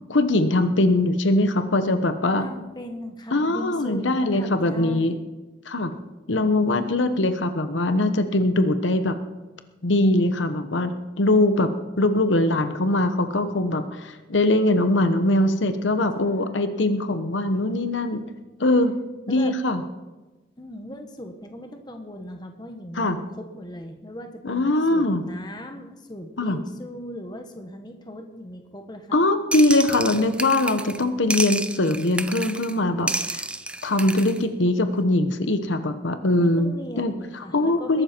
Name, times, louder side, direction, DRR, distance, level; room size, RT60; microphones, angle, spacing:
voice 1, 0.1-2.4 3.3-5.1 5.7-5.9 6.3-9.1 9.8-11.7 12.0-18.2 18.6-19.0 19.3-19.8 23.0-23.2 24.4-25.2 26.4-26.6 29.1-33.4 33.8-37.1 37.5-38.0, left 2 dB, 85° left, 9 dB, 1.1 m, -22 dB
voice 2, 2.4-5.2 16.2-16.7 19.3-19.5 20.6-29.2 36.4-38.0, left 1 dB, 20° left, 5 dB, 1.5 m, -38 dB
sound 1, 29.5-31.0 31.3-32.7 33.1-34.4, right 2 dB, 5° right, 0.4 m, -30 dB
21.5 x 12.0 x 4.5 m, 1.2 s
head